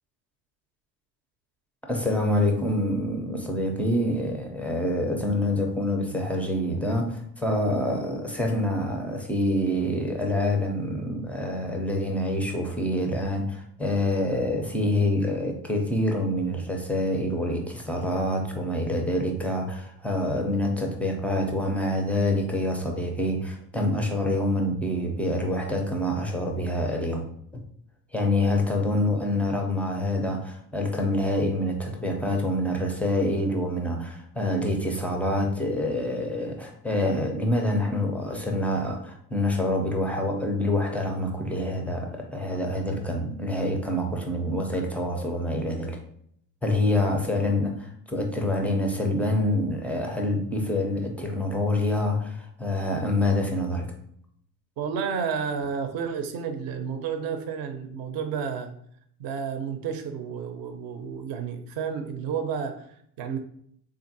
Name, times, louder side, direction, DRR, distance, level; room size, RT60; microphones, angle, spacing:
voice 1, 1.9-27.3 28.1-46.0 46.6-53.9, left 1 dB, 5° left, 1 dB, 0.4 m, -26 dB
voice 2, 54.8-58.7 59.2-63.4, right 6 dB, 45° right, 7 dB, 0.6 m, -31 dB
3.5 x 2.5 x 2.6 m, 0.67 s
hypercardioid pair, 75°, 49 cm